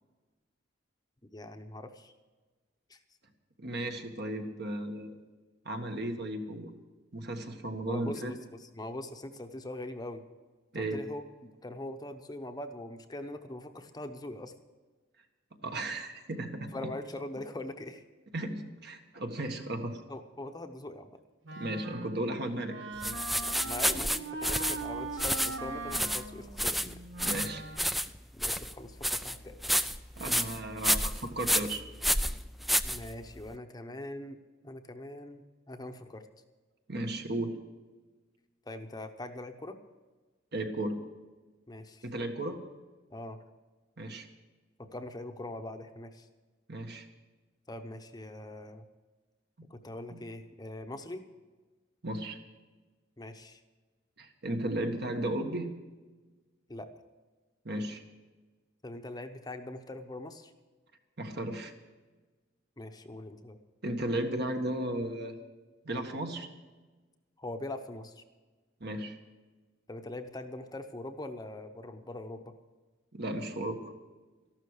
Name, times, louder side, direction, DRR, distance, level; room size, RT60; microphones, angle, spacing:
voice 1, 1.3-2.1 2.9-3.0 7.9-10.2 10.7-11.2 11.6-14.5 16.7-18.0 20.1-21.2 23.6-27.0 28.3-29.6 32.8-34.4 34.6-36.2 38.7-39.8 41.7-42.1 43.1-43.4 44.8-46.3 47.7-48.9 49.7-51.2 53.2-53.6 56.7-56.9 58.8-60.5 62.8-63.6 67.4-68.2 69.9-72.5, left 1 dB, 20° left, 6 dB, 0.8 m, -42 dB
voice 2, 3.6-5.2 5.6-6.7 7.1-8.3 10.7-11.0 15.6-16.7 18.3-20.0 21.5-23.2 27.2-27.6 30.2-31.8 36.9-37.6 40.5-41.0 42.0-42.6 44.0-44.3 46.7-47.1 50.1-50.2 52.0-52.4 54.2-55.7 57.6-58.0 61.2-61.7 63.8-65.3 65.8-66.5 68.8-69.1 73.1-73.9, right 1 dB, 60° right, 5 dB, 1.6 m, -35 dB
Wind instrument woodwind instrument, 21.4-28.0, right 3 dB, 75° right, 1.1 m, -41 dB
sound 1, 23.0-33.5, equal, ahead, 0.3 m, -30 dB
13.5 x 12.0 x 6.5 m, 1.3 s
head